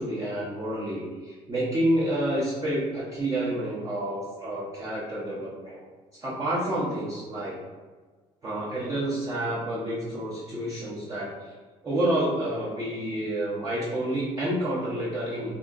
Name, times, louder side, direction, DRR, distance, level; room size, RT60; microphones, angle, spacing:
voice 1, 0.0-5.8 6.2-7.6 8.4-11.5 11.8-15.5, right 1 dB, 25° right, -9 dB, 0.7 m, -29 dB
2.8 x 2.6 x 3.5 m, 1.4 s
cardioid pair, 130°, 13 cm